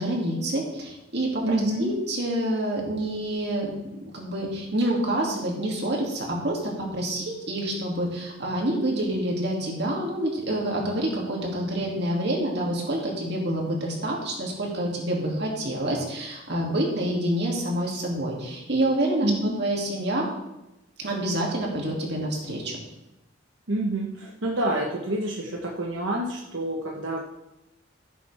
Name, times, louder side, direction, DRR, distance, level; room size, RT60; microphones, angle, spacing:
voice 1, 0.0-19.3 19.6-20.3 21.0-22.8, right 1 dB, 60° right, -2 dB, 2.7 m, -27 dB
voice 2, 1.4-2.0 19.2-19.6 23.7-27.2, right 1 dB, 85° right, -1 dB, 1.2 m, -28 dB
15.0 x 7.7 x 3.5 m, 0.94 s
head